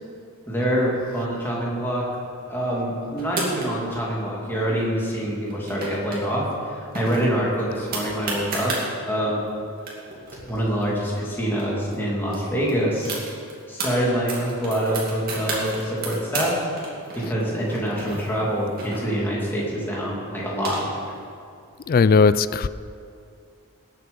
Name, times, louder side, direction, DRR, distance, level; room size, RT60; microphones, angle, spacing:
voice 1, 0.4-2.1 2.5-6.5 6.7-8.7 9.1-9.4 10.5-13.1 13.7-16.6 17.1-20.9, equal, 10° left, -5 dB, 2.5 m, -25 dB
sound 1, 3.2-4.0 5.4-6.2 6.5-6.6 6.9-8.8 9.5-9.6 9.8-11.6 11.9-12.0 12.3-13.9 14.3-16.5 16.8-19.4 20.2-21.2, right 3 dB, 40° right, 2.6 m, -32 dB
voice 2, 21.9-22.7, left 4 dB, 40° left, 15 dB, 0.3 m, -17 dB
18.5 x 7.6 x 5.4 m, 2.3 s
head